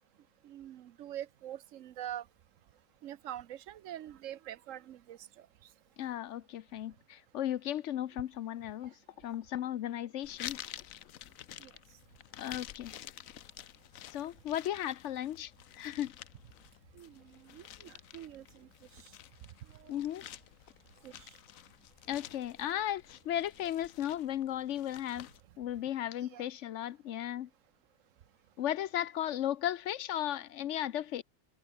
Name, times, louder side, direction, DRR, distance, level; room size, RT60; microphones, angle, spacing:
voice 1, 0.4-2.3 3.0-5.7 11.6-11.7 16.9-19.2 19.4-20.1 21.0-21.4 26.2-26.4, right 11 dB, 75° right, 1.1 m, -45 dB
voice 2, 6.0-10.6 12.4-12.9 14.1-16.1 19.9-20.2 22.1-25.3 25.6-27.5 28.6-31.2, left 11 dB, 70° left, 0.9 m, -35 dB
sound 1, 10.2-25.4, left 11 dB, 85° left, 1.2 m, -50 dB
omnidirectional pair, 1.4 m